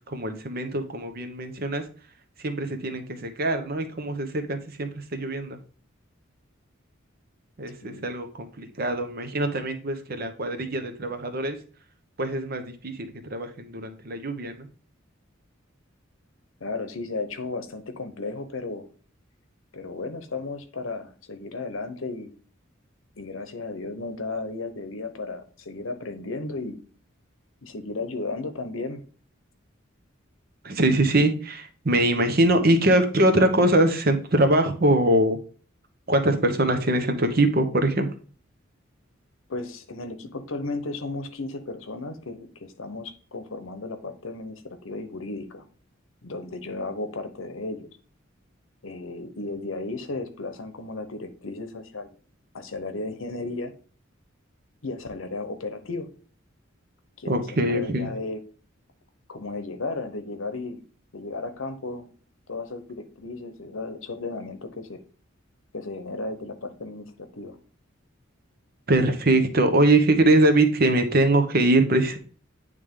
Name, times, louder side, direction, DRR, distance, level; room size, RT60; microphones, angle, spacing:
voice 1, 0.1-1.8 2.4-5.6 7.6-11.6 12.2-14.7 30.6-35.4 36.1-38.1 57.3-58.1 68.9-72.2, right 1 dB, 50° right, 7 dB, 0.9 m, -22 dB
voice 2, 16.6-18.9 19.7-22.3 23.2-26.8 27.6-29.0 39.5-45.6 46.2-48.0 48.8-52.2 52.5-53.7 54.8-56.1 57.2-58.4 59.3-60.8 61.1-62.1 62.5-65.0 65.7-67.6, left 3 dB, 80° left, 9 dB, 0.9 m, -34 dB
9.1 x 3.3 x 3.6 m, 0.40 s
head